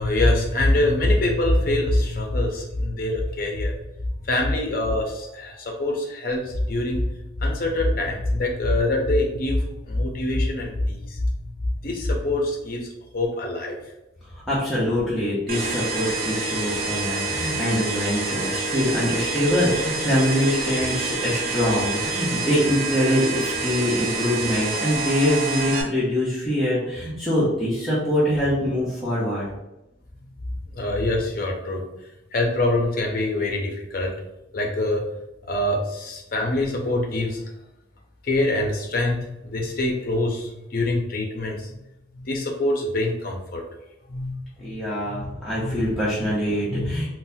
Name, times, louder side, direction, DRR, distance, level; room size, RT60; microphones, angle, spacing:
voice 1, 0.0-3.7 4.2-11.5 11.8-12.9 13.1-13.8 30.7-31.8 32.3-34.1 34.5-35.0 35.5-37.4 38.2-41.8 42.1-43.6 44.1-45.8 46.2-46.3 46.7-47.1, left 1 dB, 45° left, 1 dB, 0.6 m, -24 dB
voice 2, 14.2-29.5 44.6-47.1, equal, ahead, -10 dB, 0.7 m, -24 dB
sound 1, 15.5-25.8, right 3 dB, 45° right, 0.5 m, -27 dB
3.9 x 2.1 x 2.6 m, 0.91 s
head